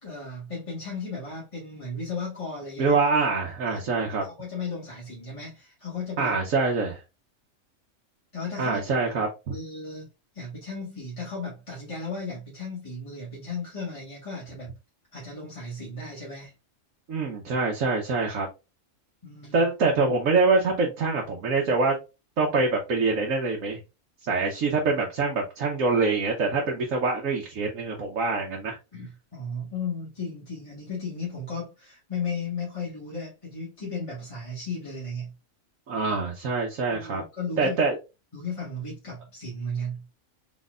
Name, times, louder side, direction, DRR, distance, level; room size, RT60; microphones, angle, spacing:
voice 1, 0.0-3.0 3.7-6.3 8.3-8.8 9.5-10.1 10.3-14.8 15.1-16.5 19.2-19.7 28.9-35.3 36.9-37.8 38.3-40.0, left 3 dB, 25° left, -7 dB, 1.6 m, -35 dB
voice 2, 2.8-4.2 6.2-7.0 8.6-9.6 17.1-18.5 19.5-21.9 22.4-23.8 24.2-28.8 35.9-37.2 37.6-38.0, right 3 dB, 85° right, 0 dB, 1.3 m, -25 dB
4.1 x 4.0 x 2.4 m, 0.27 s
omnidirectional pair, 1.4 m